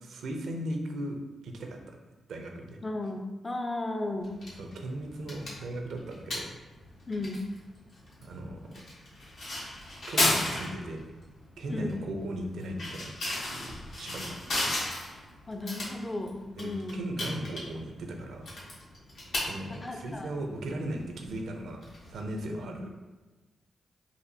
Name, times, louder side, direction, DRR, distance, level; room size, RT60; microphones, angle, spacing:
voice 1, 0.0-1.2 1.4-2.0 2.3-2.8 4.6-6.6 8.2-8.6 10.1-11.0 11.6-13.1 13.4-14.7 16.6-18.5 19.5-22.9, right 1 dB, 75° right, 3 dB, 0.5 m, -37 dB
voice 2, 2.8-4.4 7.1-7.4 11.7-12.1 15.5-17.0 19.8-20.3 22.5-22.8, left 2 dB, 30° left, 4 dB, 0.4 m, -35 dB
sound 1, 4.2-22.6, left 1 dB, 80° left, 1.2 m, -36 dB
4.1 x 2.6 x 2.7 m, 1.2 s
supercardioid pair, 45°, 0 cm